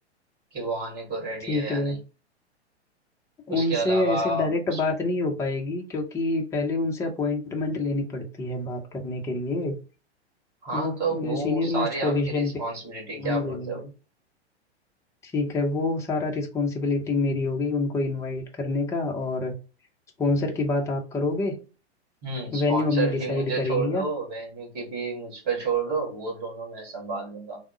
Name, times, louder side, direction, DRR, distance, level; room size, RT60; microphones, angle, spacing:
voice 1, 0.5-2.0 3.5-4.8 10.6-13.8 22.2-27.6, right 3 dB, 30° right, 2.0 m, -30 dB
voice 2, 1.5-2.0 3.5-9.7 10.7-12.5 13.1-13.8 15.2-19.5 20.2-21.6 22.5-24.1, left 2 dB, 10° left, 0.6 m, -27 dB
3.5 x 2.0 x 3.6 m
figure-of-eight pair, 105°, 33 cm